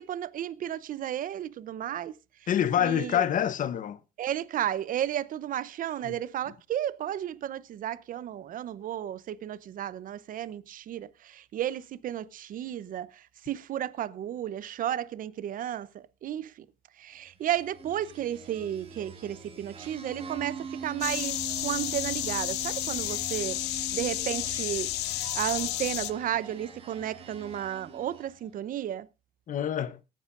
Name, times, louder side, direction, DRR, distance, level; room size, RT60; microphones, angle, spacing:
voice 1, 0.0-2.2 2.8-3.2 4.2-16.7 17.0-29.1, right 11 dB, 55° right, 0.7 m, -33 dB
voice 2, 2.5-4.0 6.1-6.2 29.5-30.0, left 10 dB, 50° left, 0.9 m, -26 dB
sound 1, 17.6-28.4, right 5 dB, 35° right, 3.2 m, -43 dB
sound 2, 21.0-26.1, left 16 dB, 85° left, 0.7 m, -32 dB
22.0 x 9.2 x 2.5 m
cardioid pair, 110°, 17 cm